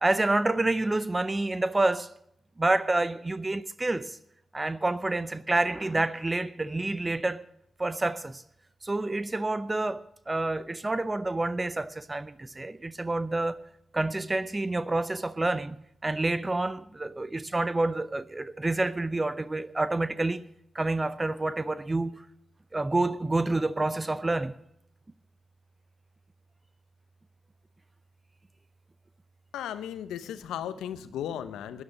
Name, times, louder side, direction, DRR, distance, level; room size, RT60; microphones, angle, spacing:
voice 1, 0.0-2.1 2.6-4.2 4.5-7.4 7.8-8.4 8.8-13.6 13.9-15.8 16.0-20.4 20.7-22.2 22.7-24.5, right 2 dB, 30° right, 0.6 m, -28 dB
voice 2, 29.5-31.8, left 10 dB, 90° left, 0.8 m, -36 dB
12.5 x 9.5 x 8.6 m
supercardioid pair, 40°, 0 cm